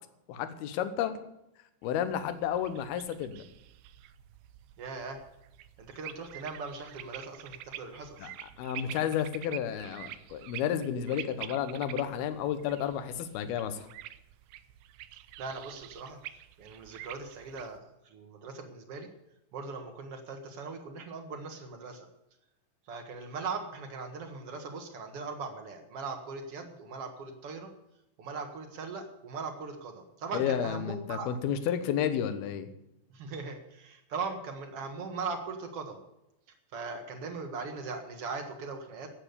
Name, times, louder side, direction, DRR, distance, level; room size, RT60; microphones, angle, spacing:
voice 1, 0.3-1.2 1.8-3.4 8.2-8.3 8.6-13.9 30.3-32.7, left 9 dB, 70° left, 10 dB, 2.8 m, -31 dB
sound 1, 1.8-17.8, right 13 dB, 80° right, 2.3 m, -47 dB
voice 2, 4.8-5.2 5.8-8.3 15.4-19.1 19.5-22.1 22.9-27.7 28.2-31.3 33.1-36.0 36.7-39.1, right 4 dB, 55° right, 4 dB, 1.7 m, -40 dB
15.0 x 8.7 x 6.9 m, 0.87 s
omnidirectional pair, 5.1 m